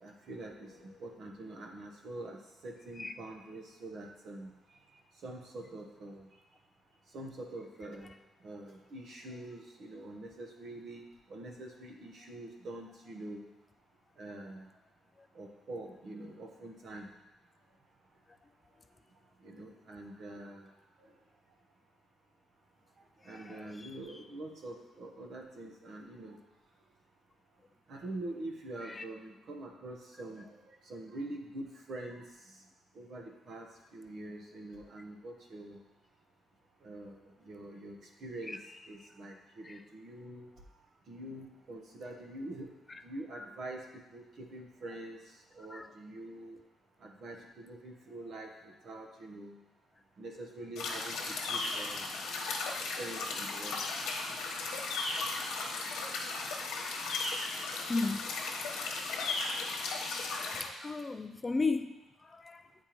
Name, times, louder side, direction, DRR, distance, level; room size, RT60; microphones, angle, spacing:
voice 1, 0.0-2.4 2.6-4.5 5.2-6.3 7.1-8.1 8.4-11.0 11.3-13.5 14.2-14.7 15.3-17.1 19.4-20.7 23.2-26.4 27.9-30.5 30.9-32.2 32.9-33.7 33.9-35.8 36.8-37.2 37.4-38.6 38.9-40.5 41.1-42.7 43.0-43.8 44.1-45.2 45.5-46.6 47.0-49.6 50.2-51.2 51.5-52.1 53.0-53.7, right 2 dB, 60° right, 1.0 m, -45 dB
voice 2, 23.2-23.9 28.8-29.0 38.5-38.6 39.6-39.8 43.3-43.5 45.7-45.9 56.7-57.4 57.9-58.3 58.7-59.8 60.4-62.8, left 3 dB, 25° left, 0.3 m, -37 dB
sound 1, 50.8-60.7, left 3 dB, 85° left, 1.1 m, -36 dB
8.6 x 4.4 x 3.0 m
cardioid pair, 90°, 0 cm